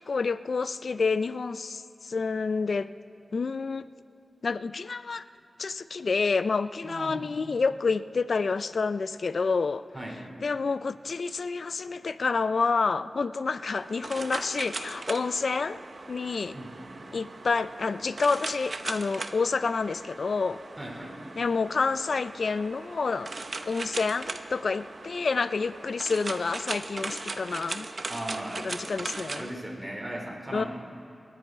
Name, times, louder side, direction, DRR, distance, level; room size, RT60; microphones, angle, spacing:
voice 1, 0.0-2.9 3.3-3.9 4.4-5.2 5.6-9.8 10.4-15.8 16.1-16.6 17.1-20.6 21.4-23.3 23.6-27.9 28.6-29.5 30.5-30.6, left 4 dB, 65° left, 14 dB, 0.3 m, -28 dB
voice 2, 6.8-7.2 9.9-10.2 16.5-17.0 20.8-21.2 28.1-28.6 29.4-30.7, right 1 dB, 5° right, -2 dB, 3.3 m, -37 dB
sound 1, 13.7-29.5, right 3 dB, 50° right, 0.7 m, -39 dB
28.0 x 10.0 x 4.5 m, 2.9 s
wide cardioid pair, 115°, 0 cm